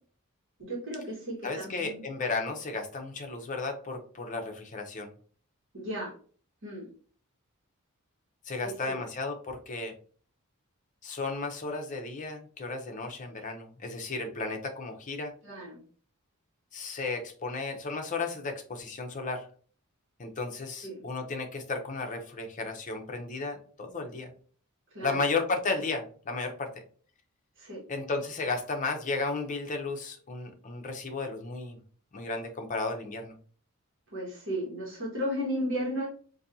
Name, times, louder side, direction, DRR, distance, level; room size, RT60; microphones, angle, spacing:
voice 1, 0.6-2.0 5.7-6.1 6.6-6.9 8.6-9.0 15.4-15.8 20.8-21.0 24.9-25.2 27.6-27.8 34.1-36.1, equal, 60° right, -4 dB, 1.4 m, -34 dB
voice 2, 1.4-5.1 8.5-9.9 11.0-15.3 16.7-19.5 20.2-24.3 25.0-26.7 27.9-31.8 32.1-33.3, left 3 dB, 35° left, 4 dB, 0.6 m, -34 dB
4.0 x 2.7 x 2.7 m, 0.43 s
head